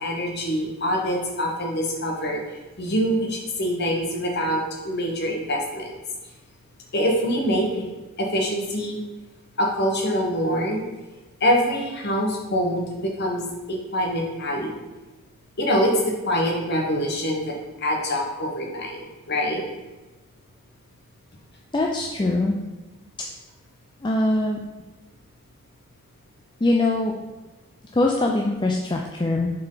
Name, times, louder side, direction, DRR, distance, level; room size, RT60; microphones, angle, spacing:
voice 1, 0.0-2.4 2.8-5.9 6.9-7.8 8.2-9.0 9.6-10.9 11.4-14.8 15.6-17.5 17.8-19.6, equal, 45° left, 0 dB, 1.2 m, -25 dB
voice 2, 21.7-22.6 24.0-24.6 26.6-27.1 27.9-29.5, left 2 dB, 20° left, 0 dB, 0.4 m, -22 dB
6.9 x 4.5 x 3.9 m, 1.1 s
head